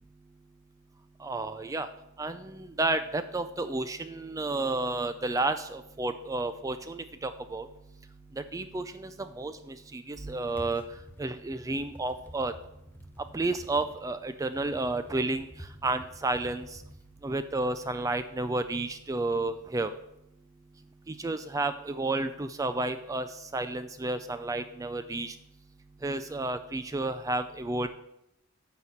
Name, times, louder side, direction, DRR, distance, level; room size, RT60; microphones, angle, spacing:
voice 1, 1.2-1.9 2.2-7.7 8.4-10.8 11.2-12.5 13.3-15.5 15.8-16.7 17.2-19.9 21.1-23.3 23.5-25.3 26.0-27.9, right 2 dB, 15° right, 10 dB, 0.3 m, -31 dB
sound 1, 10.2-20.1, equal, 10° left, 0.7 m, -50 dB
9.5 x 4.1 x 7.3 m, 0.82 s
head